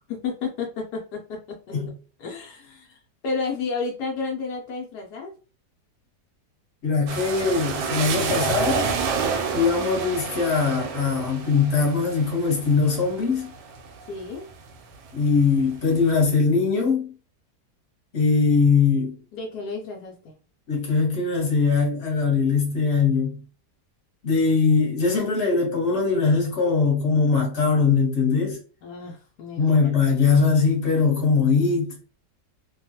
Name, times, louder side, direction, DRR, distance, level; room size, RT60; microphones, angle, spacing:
voice 1, 0.1-1.6 2.2-5.3 14.1-14.5 19.3-20.4 28.8-29.7, left 4 dB, 80° left, 1.2 m, -32 dB
voice 2, 6.8-8.9 9.5-13.5 15.1-17.1 18.1-19.1 20.7-23.4 24.2-28.6 29.6-31.9, left 4 dB, 40° left, 1.3 m, -21 dB
sound 1, 7.1-14.7 15.2-16.0, right 5 dB, 80° right, 1.2 m, -29 dB
3.0 x 2.2 x 2.8 m
omnidirectional pair, 1.8 m